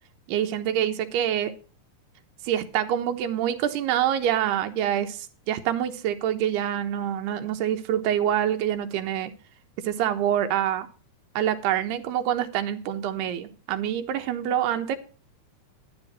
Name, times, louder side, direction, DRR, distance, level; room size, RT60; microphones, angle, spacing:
voice 1, 0.3-1.5 2.4-9.3 9.8-10.9 11.4-15.0, right 10 dB, 80° right, 3.1 m, -26 dB
12.0 x 11.0 x 4.2 m
omnidirectional pair, 4.7 m